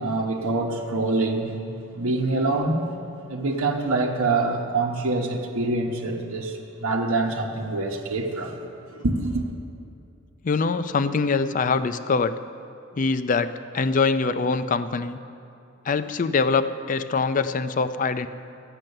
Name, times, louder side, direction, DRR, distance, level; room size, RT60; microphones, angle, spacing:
voice 1, 0.0-1.6 1.9-2.9 3.3-8.6 8.9-9.5, right 2 dB, 90° right, -1 dB, 1.0 m, -25 dB
voice 2, 10.4-12.4 12.9-15.2 15.8-18.3, left 4 dB, 40° left, 12 dB, 0.4 m, -23 dB
13.5 x 9.0 x 6.6 m, 2.7 s
head